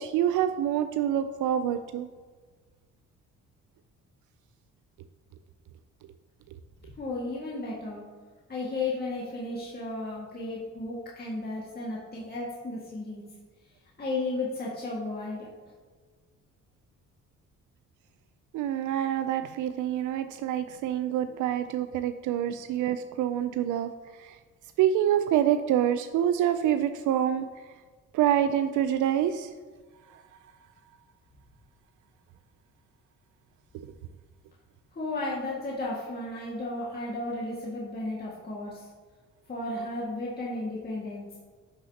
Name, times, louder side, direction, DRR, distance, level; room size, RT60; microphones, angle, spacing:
voice 1, 0.0-2.1 18.5-23.9 24.2-24.4 24.8-27.5 28.1-29.5, right 10 dB, 80° right, 9 dB, 0.4 m, -26 dB
voice 2, 7.0-8.0 8.5-13.2 14.0-15.5 35.0-38.9 39.5-41.3, left 2 dB, 30° left, -6 dB, 1.8 m, -34 dB
10.5 x 6.2 x 2.8 m, 1.5 s
cardioid pair, 90°, 30 cm